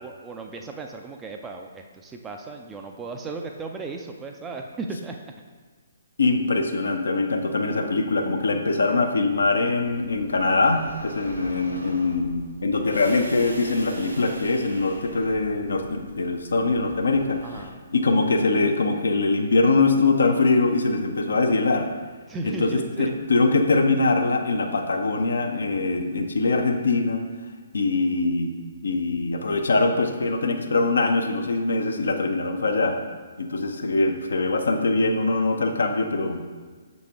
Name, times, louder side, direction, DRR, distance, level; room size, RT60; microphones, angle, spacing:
voice 1, 0.0-5.2 17.4-17.8 22.3-23.1, right 3 dB, 10° right, 3 dB, 0.4 m, -35 dB
voice 2, 6.2-17.6 17.9-21.9 22.4-27.2 27.7-28.5 28.8-32.9 33.4-36.4, left 3 dB, 65° left, 5 dB, 0.6 m, -23 dB
sound 1, 9.8-17.7, right 1 dB, 80° right, 1.0 m, -41 dB
6.5 x 4.1 x 3.5 m, 1.5 s
figure-of-eight pair, 130°, 0 cm